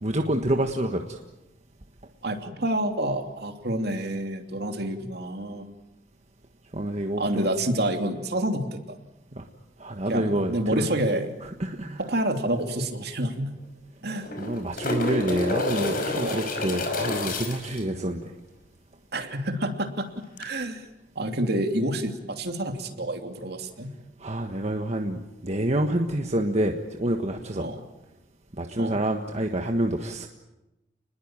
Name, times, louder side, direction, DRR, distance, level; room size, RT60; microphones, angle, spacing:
voice 1, 0.0-1.2 6.7-7.5 9.3-9.4 9.8-10.9 11.4-12.0 14.4-18.3 24.2-27.7 28.6-30.3, right 1 dB, 35° right, 3 dB, 1.5 m, -27 dB
voice 2, 2.2-5.7 7.2-9.0 10.1-11.3 12.0-13.5 14.0-14.3 16.1-16.5 19.1-20.1 20.4-20.8 21.1-23.9 27.6-27.8 28.8-29.0, right 1 dB, 60° right, 5 dB, 2.9 m, -28 dB
sound 1, 12.6-12.7 13.0-13.1 14.1-17.8 20.4-20.5, left 2 dB, 50° left, 5.3 m, -29 dB
29.5 x 21.0 x 8.9 m, 0.98 s
head